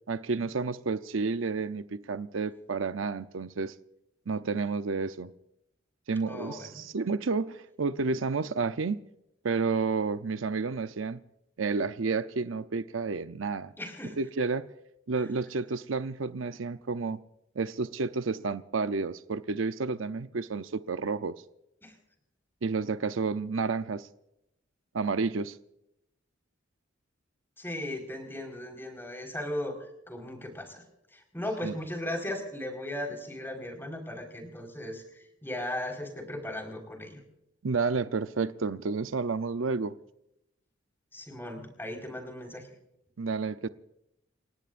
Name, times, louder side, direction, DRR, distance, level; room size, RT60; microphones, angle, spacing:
voice 1, 0.1-3.7 4.3-5.3 6.1-9.0 9.4-11.2 11.6-13.7 14.2-14.7 15.1-17.2 17.6-21.4 22.6-24.1 24.9-25.6 31.6-31.7 37.6-40.0 43.2-43.7, right 4 dB, 90° right, 0.6 m, -30 dB
voice 2, 6.3-6.8 13.8-14.1 21.8-21.9 27.6-29.7 30.1-30.8 31.1-37.2 41.1-42.7, left 1 dB, 10° left, 4.5 m, -37 dB
29.0 x 18.0 x 2.6 m
head